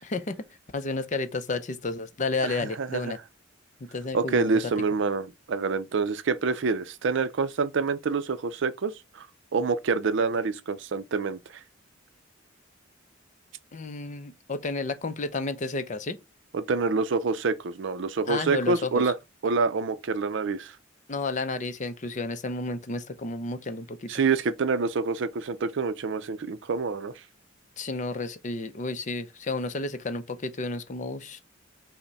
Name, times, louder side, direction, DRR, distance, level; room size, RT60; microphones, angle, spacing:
voice 1, 0.0-0.4 0.7-3.2 3.8-4.7 13.7-16.2 18.3-19.1 21.1-24.1 27.8-31.4, left 3 dB, 40° left, 0.6 m, -31 dB
voice 2, 2.4-3.1 4.1-9.3 9.5-11.4 16.5-19.2 19.4-20.7 24.1-27.1, right 4 dB, 65° right, 0.5 m, -27 dB
5.6 x 2.1 x 4.0 m
head